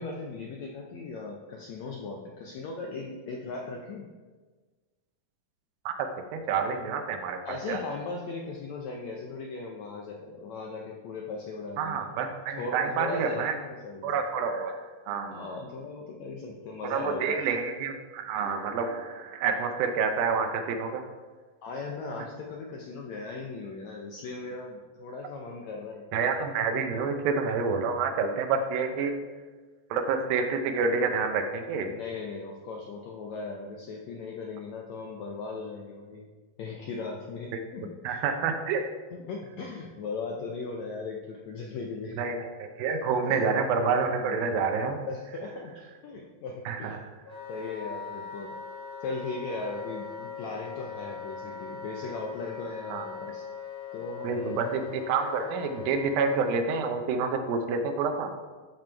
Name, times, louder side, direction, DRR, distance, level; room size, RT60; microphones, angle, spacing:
voice 1, 0.0-4.1 7.5-12.0 12.6-14.2 15.3-17.4 21.6-26.2 31.9-36.3 36.6-38.2 39.3-42.3 43.2-43.4 44.2-44.4 45.1-47.0 47.5-48.5 49.0-53.5 53.9-54.7, left 3 dB, 75° left, 0 dB, 1.6 m, -38 dB
voice 2, 5.9-7.8 11.8-13.6 14.0-14.8 15.1-15.5 16.8-21.0 26.1-29.1 29.9-31.9 38.0-38.9 42.2-45.0 46.7-47.0 52.9-53.1 54.2-58.3, right 5 dB, 85° right, 6 dB, 2.6 m, -28 dB
Wind instrument woodwind instrument, 47.2-56.6, left 6 dB, 5° left, 2.8 m, -40 dB
12.5 x 5.3 x 4.5 m, 1.4 s
omnidirectional pair, 4.1 m